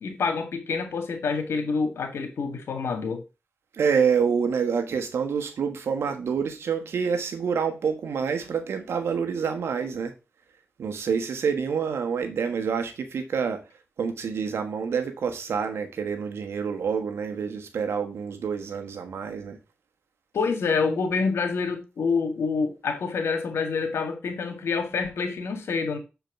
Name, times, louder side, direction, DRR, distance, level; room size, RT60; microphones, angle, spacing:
voice 1, 0.0-3.2 20.3-26.0, left 5 dB, 85° left, 1.7 m, -27 dB
voice 2, 3.7-10.1 10.8-13.6 14.0-19.6, right 6 dB, 85° right, 1.3 m, -27 dB
6.8 x 4.6 x 5.8 m
cardioid pair, 45°, 4 cm